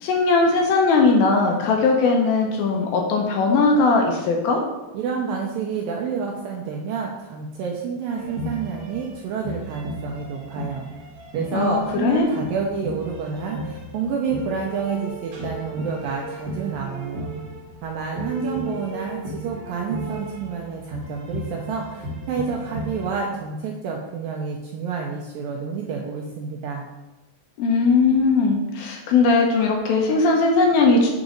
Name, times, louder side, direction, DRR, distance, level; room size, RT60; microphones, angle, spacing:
voice 1, 0.0-4.6 11.5-12.3 27.6-31.1, left 3 dB, 75° left, 1 dB, 2.4 m, -19 dB
voice 2, 4.9-10.8 11.3-17.3 17.8-26.8, right 5 dB, 90° right, 0 dB, 2.0 m, -29 dB
sound 1, 8.1-23.3, right 1 dB, 60° right, 1.6 m, -35 dB
7.2 x 3.9 x 5.1 m, 1.0 s
omnidirectional pair, 4.7 m